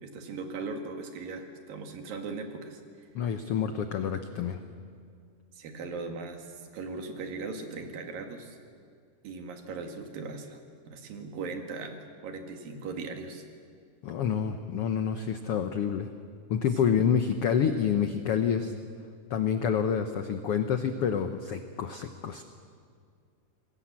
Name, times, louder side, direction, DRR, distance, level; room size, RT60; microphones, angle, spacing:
voice 1, 0.0-3.1 5.5-8.6 9.2-10.6 10.9-12.0 12.2-13.4 16.8-17.1, right 4 dB, 90° right, 5 dB, 3.8 m, -39 dB
voice 2, 3.1-4.6 14.0-16.1 16.5-18.7 19.3-22.4, left 7 dB, 75° left, 8 dB, 1.3 m, -28 dB
27.0 x 20.5 x 7.5 m, 2.2 s
omnidirectional pair, 3.9 m